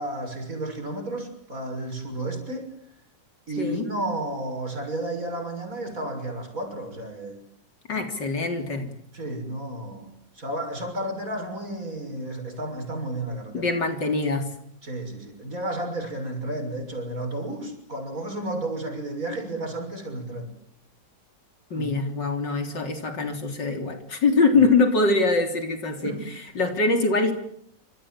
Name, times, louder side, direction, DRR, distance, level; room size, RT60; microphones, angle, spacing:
voice 1, 0.0-2.7 3.5-7.4 9.1-10.1 10.4-13.7 14.8-20.5 21.7-21.9 24.5-24.7 26.0-26.3, right 1 dB, 50° right, 5 dB, 7.2 m, -32 dB
voice 2, 7.9-8.9 13.5-14.5 21.7-26.1 26.6-27.3, left 3 dB, 75° left, 5 dB, 4.3 m, -23 dB
27.5 x 27.0 x 7.6 m, 0.69 s
omnidirectional pair, 1.9 m